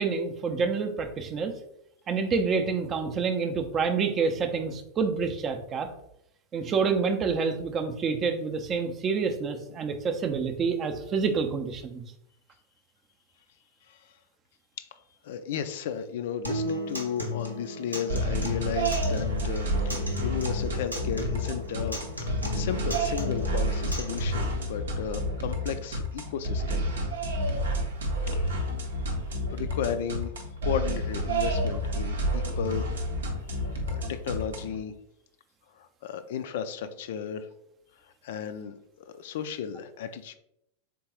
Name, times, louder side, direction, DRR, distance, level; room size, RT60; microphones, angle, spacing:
voice 1, 0.0-1.5 2.1-5.9 6.5-12.0, right 5 dB, 30° right, 7 dB, 0.5 m, -28 dB
voice 2, 15.2-22.0 22.3-26.8 28.3-28.8 29.5-30.3 30.6-33.0 33.5-34.9 35.7-37.5 38.0-40.3, left 7 dB, 55° left, 10 dB, 0.3 m, -34 dB
Acoustic guitar, 16.4-24.4, left 2 dB, 90° right, 0.9 m, -35 dB
sound 1, 18.1-34.8, right 1 dB, 65° right, 0.7 m, -30 dB
3.7 x 3.7 x 2.8 m, 0.78 s
figure-of-eight pair, 90°, 0 cm